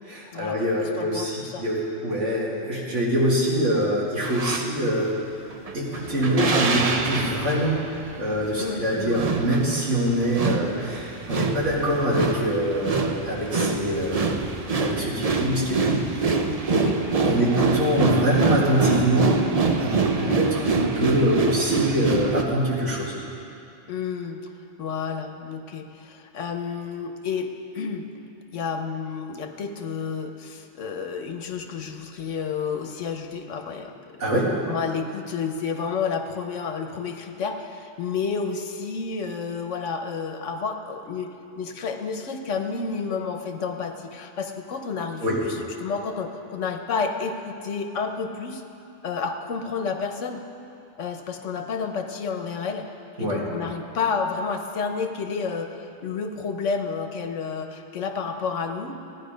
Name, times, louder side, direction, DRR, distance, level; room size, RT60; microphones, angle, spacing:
voice 1, 0.1-5.1 5.7-7.8 8.2-14.4 14.8-16.4 16.7-16.8 17.2-19.4 19.8-23.1 34.2-34.5 45.2-45.4 53.2-53.4, equal, 80° right, -5 dB, 2.7 m, -24 dB
voice 2, 1.0-1.6 8.6-9.1 16.8-17.0 17.3-17.5 20.2-20.4 23.9-24.4 24.8-28.0 28.5-33.9 34.7-48.6 49.0-50.4 51.0-52.9 53.2-59.0, left 5 dB, 80° left, 5 dB, 1.3 m, -30 dB
sound 1, 4.2-4.7 5.5-22.4, right 4 dB, 35° right, 0.7 m, -25 dB
16.0 x 10.5 x 5.1 m, 2.7 s
omnidirectional pair, 1.2 m